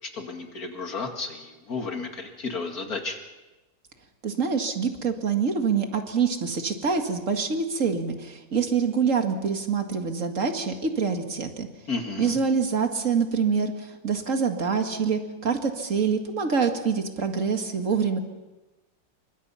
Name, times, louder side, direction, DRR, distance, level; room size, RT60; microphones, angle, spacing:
voice 1, 0.0-3.2 11.9-12.4, left 4 dB, 50° left, 3 dB, 2.7 m, -33 dB
voice 2, 4.2-11.7 12.2-18.2, right 5 dB, 45° right, 5 dB, 2.3 m, -25 dB
29.0 x 25.0 x 5.7 m, 1.1 s
omnidirectional pair, 2.0 m